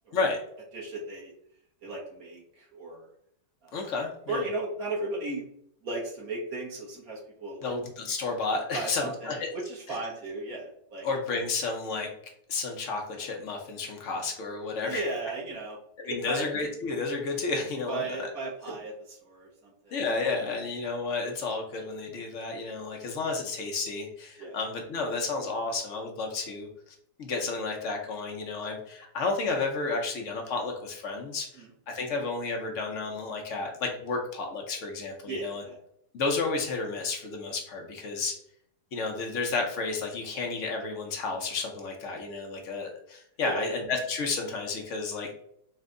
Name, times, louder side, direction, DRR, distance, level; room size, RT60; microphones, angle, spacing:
voice 1, 0.7-1.3 1.8-3.1 3.6-3.8 4.3-5.4 5.8-7.7 8.7-11.1 14.8-15.8 16.1-16.4 17.9-20.0 24.4-24.6 31.6-31.7 35.3-35.8 43.4-43.8, right 2 dB, 55° right, -3 dB, 1.2 m, -36 dB
voice 2, 3.7-4.5 7.6-9.5 11.0-12.1 12.5-15.1 16.0-18.3 19.9-26.7 27.2-35.6 36.1-38.4 38.9-45.3, left 3 dB, 65° left, 2 dB, 0.8 m, -31 dB
4.3 x 2.2 x 3.7 m, 0.71 s
omnidirectional pair, 2.0 m